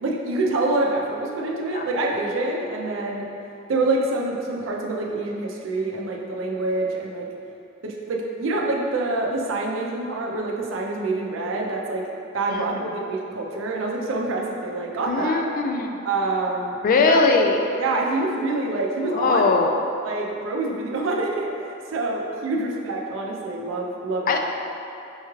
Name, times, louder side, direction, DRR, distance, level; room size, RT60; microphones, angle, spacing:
voice 1, 0.0-3.3 3.7-7.3 7.8-12.1 12.3-15.4 16.0-17.2 17.8-19.5 20.0-24.4, right 2 dB, 80° right, -1 dB, 0.5 m, -26 dB
voice 2, 15.1-15.9 16.8-17.6 19.2-19.7 24.3-24.4, left 4 dB, 45° left, 4 dB, 0.3 m, -20 dB
5.4 x 2.3 x 3.1 m, 2.7 s
head